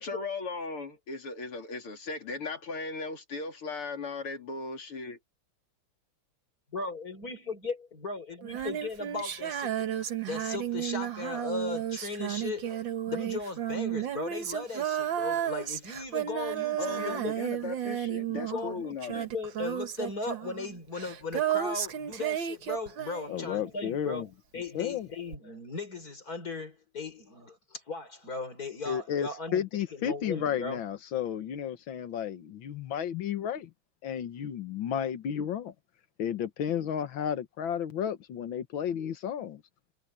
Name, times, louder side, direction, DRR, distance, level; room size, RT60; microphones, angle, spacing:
voice 1, 0.0-5.2 16.8-19.3, left 3 dB, 85° left, 4.1 m, -37 dB
voice 2, 6.7-17.3 18.3-24.3 24.5-30.8, left 3 dB, 40° left, 5.2 m, -37 dB
Female singing, 8.4-23.8 25.3-25.4, right 10 dB, 60° right, 1.9 m, -33 dB
voice 3, 23.3-24.3 24.7-25.1 28.8-33.7 34.0-35.7 36.2-39.6, left 9 dB, 65° left, 1.9 m, -32 dB
omnidirectional pair, 2.4 m